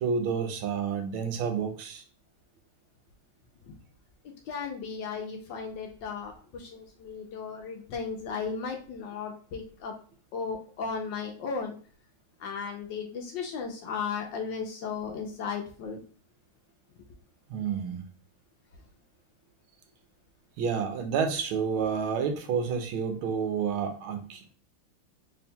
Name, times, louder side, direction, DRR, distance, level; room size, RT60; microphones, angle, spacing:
voice 1, 0.0-2.0 17.5-18.0 20.6-24.4, right 6 dB, 80° right, 5 dB, 1.5 m, -29 dB
voice 2, 4.5-9.9 10.3-11.7 12.4-16.0, left 5 dB, 70° left, 3 dB, 1.1 m, -35 dB
4.2 x 3.6 x 2.2 m, 0.42 s
omnidirectional pair, 2.3 m